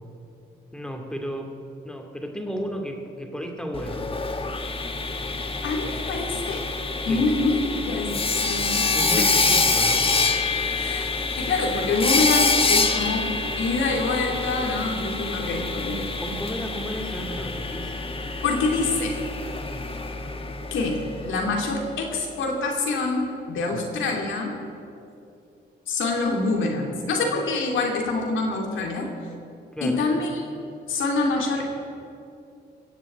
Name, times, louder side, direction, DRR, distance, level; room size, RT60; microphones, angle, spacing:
voice 1, 0.7-4.1 5.8-6.0 7.1-7.3 8.9-10.1 16.2-17.9 19.7-19.9 23.7-23.8 29.7-30.2, equal, 5° left, 3 dB, 2.4 m, -33 dB
Sawing, 3.7-21.6, left 3 dB, 30° left, 1.3 m, -26 dB
voice 2, 5.6-6.7 7.0-8.9 9.2-9.4 10.5-11.1 11.3-16.0 18.4-19.2 20.7-24.5 25.9-29.1 29.8-30.4 30.9-31.7, left 3 dB, 85° left, 1 dB, 3.0 m, -26 dB
21.5 x 7.4 x 8.7 m, 2.5 s
cardioid pair, 80°, 20 cm